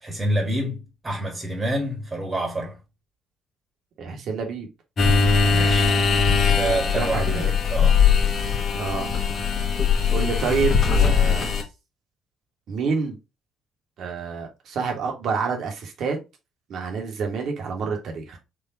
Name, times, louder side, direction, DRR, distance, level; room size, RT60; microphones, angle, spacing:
voice 1, 0.0-2.8 5.5-6.0 6.4-8.0, right 1 dB, 25° right, 1.6 m, -28 dB
voice 2, 4.0-4.7 6.9-7.5 8.8-9.1 10.1-11.5 12.7-13.2 14.0-16.2 16.7-18.4, right 5 dB, 55° right, 1.4 m, -28 dB
sound 1, 5.0-11.6, left 6 dB, 45° left, 1.2 m, -20 dB
4.8 x 2.9 x 3.7 m
figure-of-eight pair, 50°, 0 cm